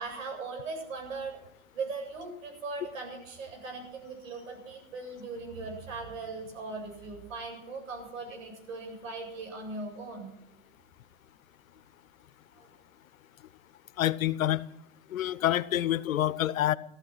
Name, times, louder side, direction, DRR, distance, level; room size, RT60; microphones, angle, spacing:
voice 1, 0.0-1.4 1.7-10.3 12.6-12.7, right 3 dB, 75° right, 7.9 m, -39 dB
voice 2, 14.0-14.6 15.1-16.7, left 12 dB, 90° left, 0.9 m, -27 dB
16.0 x 14.0 x 6.2 m
hypercardioid pair, 135°, 40 cm